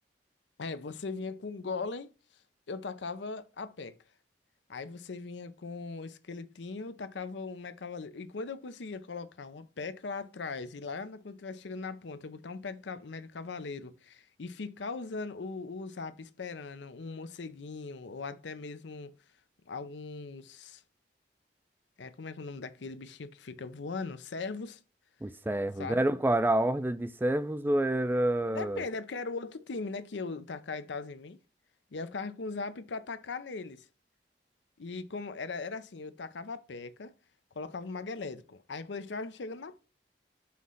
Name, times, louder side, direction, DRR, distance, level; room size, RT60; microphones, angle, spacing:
voice 1, 0.6-2.1 2.7-4.0 4.7-19.1 19.7-20.8 22.0-24.8 25.8-26.0 28.5-31.4 31.9-33.9 34.8-37.1 37.5-39.8, left 4 dB, 85° left, 0.6 m, -39 dB
voice 2, 25.2-28.8, right 1 dB, 10° right, 0.3 m, -28 dB
5.7 x 3.1 x 5.5 m
head